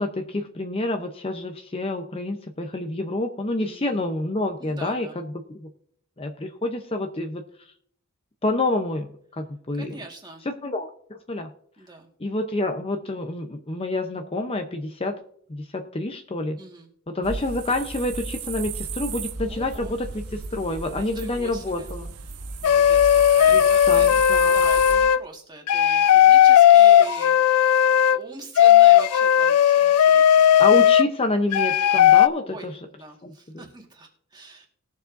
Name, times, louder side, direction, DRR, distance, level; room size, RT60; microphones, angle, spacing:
voice 1, 0.0-5.7 6.2-7.7 8.4-9.1 9.4-10.0 10.5-11.5 12.2-15.2 15.5-16.6 17.1-22.1 23.5-23.6 23.9-24.6 30.6-32.7 33.2-33.6, left 2 dB, 25° left, 5 dB, 0.7 m, -28 dB
voice 2, 3.6-4.0 4.6-5.1 9.7-10.4 11.8-12.1 16.5-16.9 19.5-19.9 20.9-21.9 22.6-24.1 24.4-30.8 32.4-34.7, right 2 dB, 20° right, 2 dB, 1.6 m, -42 dB
sound 1, 17.2-25.1, right 4 dB, 90° right, 1.1 m, -34 dB
sound 2, 22.6-25.2 25.7-28.2 28.6-31.1 31.5-32.3, left 10 dB, 85° left, 0.4 m, -15 dB
20.0 x 7.2 x 2.6 m, 0.63 s
head